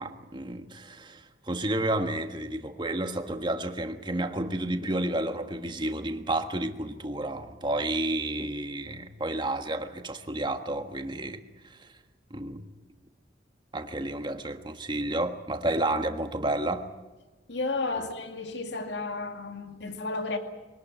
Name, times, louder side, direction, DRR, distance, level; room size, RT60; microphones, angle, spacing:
voice 1, 0.0-11.4 11.7-11.9 12.3-12.6 13.7-16.9 18.0-18.1, right 1 dB, 25° right, 1.5 m, -31 dB
voice 2, 17.5-20.4, left 3 dB, 75° left, 2.2 m, -32 dB
23.5 x 18.5 x 9.0 m
head